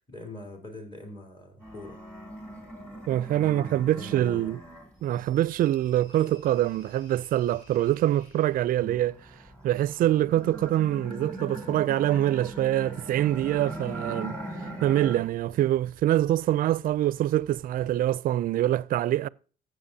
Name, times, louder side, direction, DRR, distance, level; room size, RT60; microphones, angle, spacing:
voice 1, 0.1-2.0 3.3-4.6 8.8-9.0, left 1 dB, 25° left, 3.7 m, -43 dB
sound 1, 1.6-5.2 5.7-8.0 8.5-15.5 15.8-16.5 16.9-17.9, right 1 dB, 10° left, 3.5 m, -41 dB
voice 2, 3.1-4.6 5.0-9.1 9.6-14.4 14.8-19.3, right 13 dB, 55° right, 0.4 m, -25 dB
sound 2, 4.9-9.1, left 1 dB, 55° left, 6.1 m, -58 dB
15.5 x 7.5 x 2.7 m
cardioid pair, 110°, 17 cm